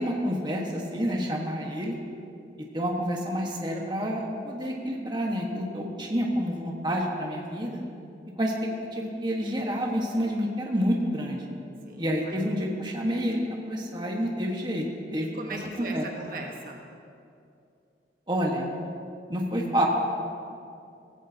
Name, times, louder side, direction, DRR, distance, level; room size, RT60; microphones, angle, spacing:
voice 1, 0.0-1.9 2.7-7.8 8.4-8.5 8.9-11.4 12.0-14.8 15.1-16.1 18.3-18.7 19.3-19.8, equal, 25° right, -1 dB, 1.4 m, -28 dB
voice 2, 11.8-12.4 15.2-16.8, right 2 dB, 50° right, 1 dB, 1.3 m, -39 dB
17.5 x 16.0 x 2.9 m, 2.5 s
head